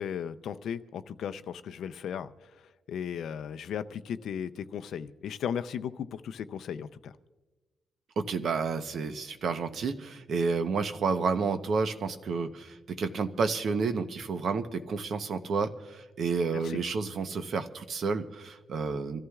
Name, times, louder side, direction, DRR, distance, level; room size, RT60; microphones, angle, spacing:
voice 1, 0.0-2.3 2.9-7.1 16.5-16.8, left 8 dB, 65° left, 11 dB, 0.5 m, -36 dB
voice 2, 8.2-19.2, right 4 dB, 50° right, 9 dB, 0.8 m, -30 dB
28.0 x 14.5 x 2.4 m, 1.2 s
wide cardioid pair, 175°, 0 cm